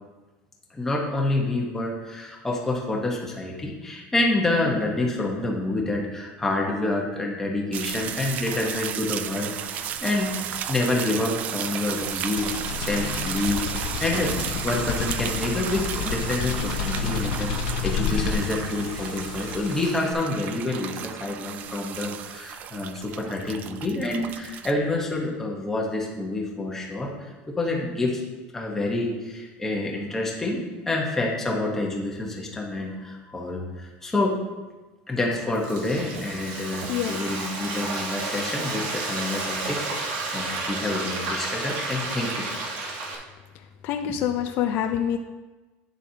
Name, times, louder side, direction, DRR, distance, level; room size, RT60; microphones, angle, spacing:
voice 1, 0.7-28.2 28.5-34.5 35.1-42.6, left 2 dB, 10° left, -1 dB, 1.1 m, -28 dB
sound 1, 7.7-24.7, right 9 dB, 35° right, 0.3 m, -33 dB
sound 2, 11.9-20.1, left 7 dB, 90° left, 0.6 m, -30 dB
Frying (food), 35.3-43.2, right 3 dB, 75° right, 1.4 m, -31 dB
voice 2, 36.9-37.2 43.5-45.2, left 9 dB, 45° left, 5 dB, 0.4 m, -26 dB
9.0 x 7.2 x 2.8 m, 1.2 s
cardioid pair, 170°, 5 cm